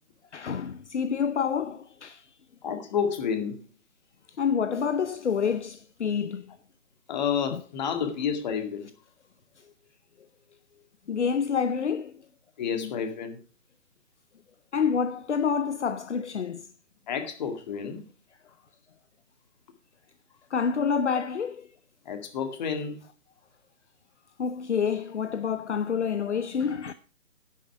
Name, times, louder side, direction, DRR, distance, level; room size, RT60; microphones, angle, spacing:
voice 1, 0.3-2.3 4.4-6.5 7.5-7.6 11.1-12.1 12.7-12.9 14.7-16.6 20.5-21.7 24.4-26.9, left 6 dB, 60° left, 0.8 m, -28 dB
voice 2, 2.6-3.6 7.1-8.9 12.6-13.4 17.1-18.0 22.1-23.0, left 7 dB, 35° left, 2.1 m, -30 dB
10.0 x 10.0 x 4.5 m
figure-of-eight pair, 145°, 39 cm